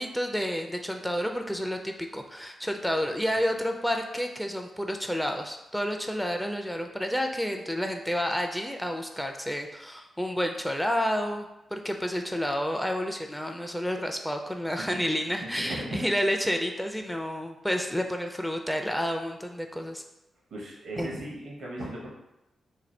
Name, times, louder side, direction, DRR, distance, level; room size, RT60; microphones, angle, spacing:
voice 1, 0.0-20.0 21.0-21.2, equal, 5° left, 4 dB, 0.4 m, -30 dB
voice 2, 15.4-16.0 17.1-17.2 20.5-22.1, right 1 dB, 75° right, -2 dB, 0.8 m, -37 dB
2.6 x 2.3 x 3.2 m, 0.93 s
supercardioid pair, 45°, 0 cm